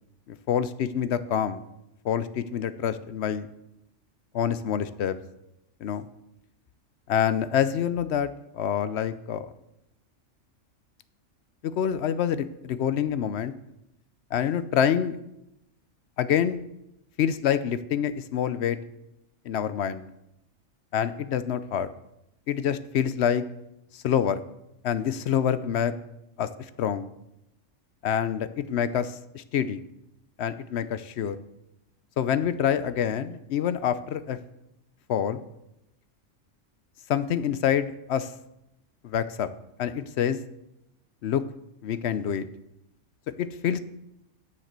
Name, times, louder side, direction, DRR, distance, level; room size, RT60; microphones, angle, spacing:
voice 1, 0.3-1.6 2.0-3.5 4.3-5.2 5.8-6.1 7.1-9.5 11.6-13.5 14.3-15.2 16.2-16.6 17.2-18.8 19.5-20.1 20.9-21.9 22.5-23.4 23.9-24.4 24.8-25.9 26.4-27.1 28.0-29.8 30.4-31.4 32.2-34.4 35.1-35.4 37.1-38.3 39.0-39.5 39.8-40.4 41.2-41.4 41.8-42.5 43.4-43.8, left 9 dB, 65° left, 13 dB, 0.8 m, -26 dB
9.1 x 7.4 x 6.6 m, 0.87 s
omnidirectional pair, 1.3 m